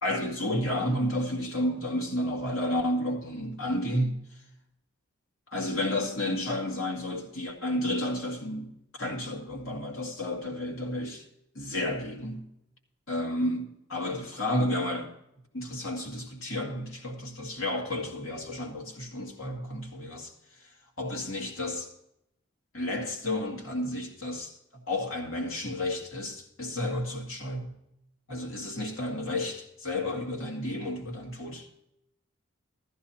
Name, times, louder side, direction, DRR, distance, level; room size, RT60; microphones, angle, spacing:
voice 1, 0.0-4.4 5.5-11.2 11.5-12.5 13.1-15.1 15.5-21.9 22.7-27.7 28.3-31.7, left 1 dB, 85° left, 2.2 m, -32 dB
15.5 x 14.0 x 2.8 m
head